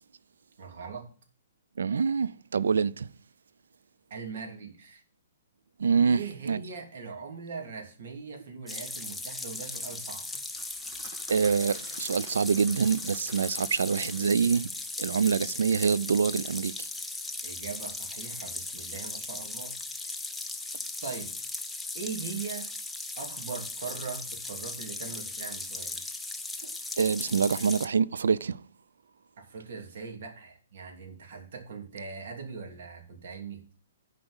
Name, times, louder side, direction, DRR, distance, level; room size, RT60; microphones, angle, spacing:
voice 1, 0.6-1.1 4.1-5.0 6.0-10.3 17.4-19.8 20.0-20.3 21.0-21.3 21.9-22.7 23.2-26.0 29.4-33.6, right 5 dB, 55° right, 3.0 m, -40 dB
voice 2, 1.8-3.1 5.8-6.2 6.5-6.6 11.3-14.7 15.0-16.9 26.6-26.7 27.0-28.6, right 6 dB, 90° right, 0.4 m, -26 dB
sound 1, 8.7-27.9, left 2 dB, 5° left, 0.6 m, -37 dB
sound 2, 10.3-15.0, right 4 dB, 35° right, 1.9 m, -51 dB
9.7 x 5.1 x 7.9 m
hypercardioid pair, 160°, 0 cm